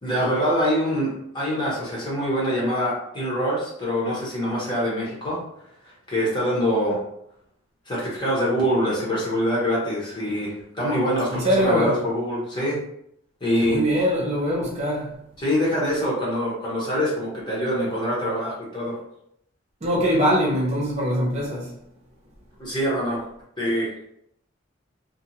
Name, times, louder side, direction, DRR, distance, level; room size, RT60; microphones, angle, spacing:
voice 1, 0.0-5.4 6.1-7.0 7.9-12.8 13.4-13.8 15.4-19.0 22.6-23.2 23.6-23.9, equal, 25° left, 1.0 m, -24 dB
voice 2, 11.3-12.0 13.6-15.2 19.8-21.7, equal, 35° right, 0.8 m, -22 dB
2.5 x 2.4 x 2.8 m
head